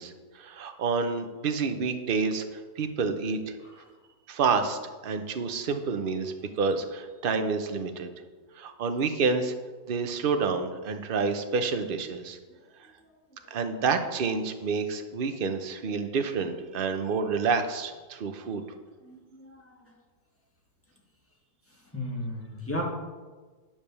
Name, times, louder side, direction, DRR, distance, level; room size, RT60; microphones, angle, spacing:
voice 1, 0.0-3.6 4.3-8.1 8.5-9.5 9.9-12.4 12.7-12.9 13.5-18.6, right 5 dB, 45° right, 7 dB, 0.7 m, -29 dB
voice 2, 19.0-19.8 21.9-22.8, left 1 dB, 10° left, -2 dB, 1.7 m, -35 dB
10.0 x 5.2 x 6.9 m, 1.4 s
omnidirectional pair, 1.8 m